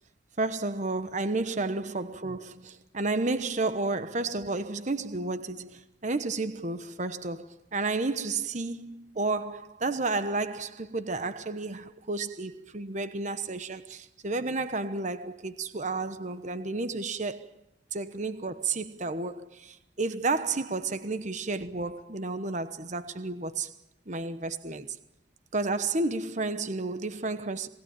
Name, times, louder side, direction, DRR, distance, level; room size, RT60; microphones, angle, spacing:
voice 1, 0.4-17.5 17.9-23.7 24.1-25.0 25.5-27.7, right 3 dB, 40° right, 1.1 m, -31 dB
27.0 x 19.5 x 8.9 m
head